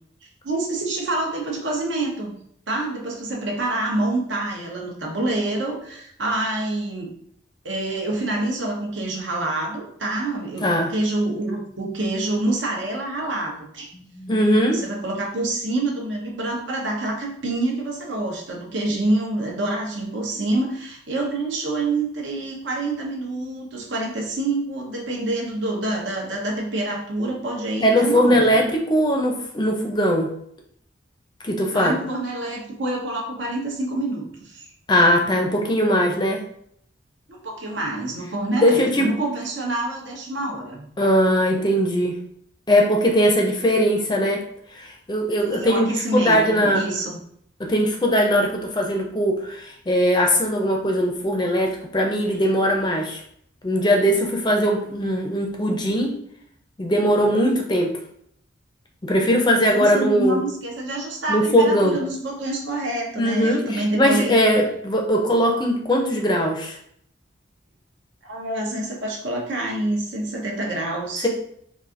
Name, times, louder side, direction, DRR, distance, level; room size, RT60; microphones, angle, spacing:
voice 1, 0.4-2.4 2.7-7.1 7.6-13.9 14.7-28.6 31.7-34.7 37.3-40.9 45.5-47.2 59.7-64.3 68.2-71.3, right 2 dB, 80° right, -1 dB, 0.8 m, -27 dB
voice 2, 10.6-10.9 13.9-14.8 27.8-30.3 31.4-32.0 34.9-36.4 38.6-39.1 41.0-42.2 42.7-44.4 44.7-46.9 47.6-53.2 53.6-56.2 56.8-57.9 59.0-60.4 61.3-62.0 63.2-66.8 71.2-71.3, equal, 25° left, 1 dB, 0.4 m, -20 dB
4.0 x 2.5 x 2.5 m, 0.68 s
head